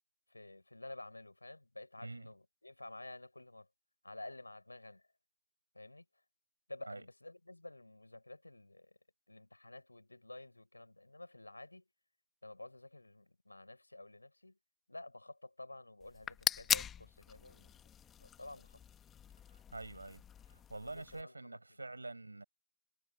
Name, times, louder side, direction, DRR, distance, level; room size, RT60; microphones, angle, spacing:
voice 1, 0.3-3.7 4.0-5.0 5.7-6.0 6.7-9.0 9.3-11.8 12.4-14.6 14.9-17.7 18.2-18.8 20.8-21.8, left 2 dB, 80° left, 4.9 m, -51 dB
sound 1, 16.0-21.2, left 9 dB, 10° left, 1.3 m, -40 dB
voice 2, 19.5-20.2 20.5-22.4, right 2 dB, 80° right, 6.4 m, -46 dB
figure-of-eight pair, 140°, 0 cm